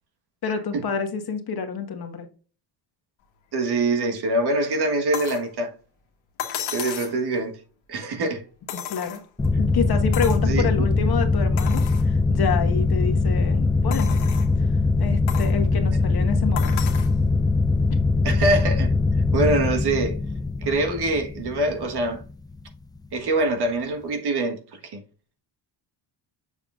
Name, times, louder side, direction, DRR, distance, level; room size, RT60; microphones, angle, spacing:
voice 1, 0.4-2.3 8.7-9.2 9.6-14.3 14.6-14.7 15.0-17.0, left 6 dB, 55° left, 1.6 m, -28 dB
voice 2, 3.5-5.7 6.7-7.6 7.9-8.4 10.4-10.7 18.2-18.9 19.3-20.2 20.6-22.2 23.1-25.0, right 2 dB, 55° right, 1.5 m, -24 dB
sound 1, 5.1-5.5 6.4-7.2 8.7-9.5 10.1-10.5 11.0-11.1 11.6-12.1 12.7-12.8 13.9-14.5 15.3-15.6 16.6-17.1 18.4-18.5, left 10 dB, 80° left, 1.5 m, -33 dB
sound 2, 9.4-22.6, left 3 dB, 10° left, 0.3 m, -22 dB
6.9 x 6.7 x 2.5 m
supercardioid pair, 75°, 46 cm